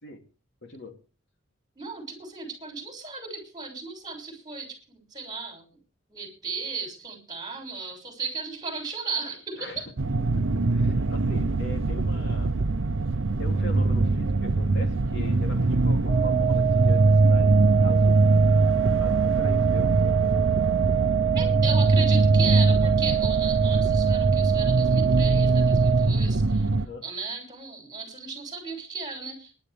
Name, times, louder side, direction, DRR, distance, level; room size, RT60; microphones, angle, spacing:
voice 1, 0.6-1.0 9.6-9.8 10.3-12.5 13.4-17.6 17.8-18.2 19.0-20.2 26.7-27.1, left 2 dB, 60° left, 2.9 m, -41 dB
voice 2, 1.8-5.8 6.1-9.9 21.3-26.7 27.0-29.5, right 4 dB, 20° right, 6.3 m, -35 dB
sound 1, 10.0-26.9, right 2 dB, 70° right, 0.7 m, -22 dB
sound 2, 16.1-26.1, right 13 dB, 15° left, 1.7 m, -26 dB
24.0 x 11.0 x 3.4 m
head